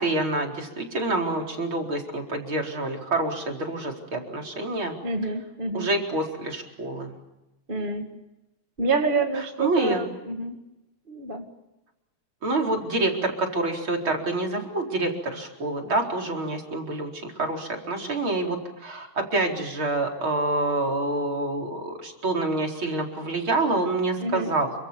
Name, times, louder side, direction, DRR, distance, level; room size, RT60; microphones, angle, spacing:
voice 1, 0.0-4.9 5.7-7.1 9.6-10.0 12.4-24.7, right 2 dB, 40° right, 1 dB, 5.0 m, -27 dB
voice 2, 5.0-5.9 7.7-8.1 8.8-10.6 11.1-11.4 24.2-24.5, right 3 dB, 20° right, 4 dB, 1.9 m, -27 dB
29.5 x 26.0 x 7.2 m, 0.97 s
omnidirectional pair, 3.4 m